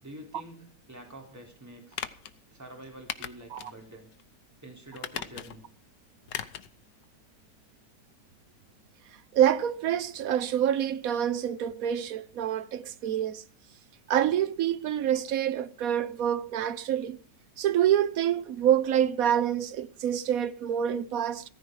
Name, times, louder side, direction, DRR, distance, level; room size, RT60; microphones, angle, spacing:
voice 1, 0.0-2.0 2.5-4.1 4.6-5.6, right 1 dB, 10° right, 3.6 m, -47 dB
sound 1, 1.9-2.3 3.1-3.7 4.1-4.2 4.9-5.7 6.3-6.7 7.0-7.1, left 9 dB, 85° left, 1.6 m, -37 dB
voice 2, 9.3-13.4 14.1-17.2 17.6-21.4, right 10 dB, 60° right, 1.1 m, -27 dB
15.0 x 14.5 x 4.7 m
omnidirectional pair, 1.8 m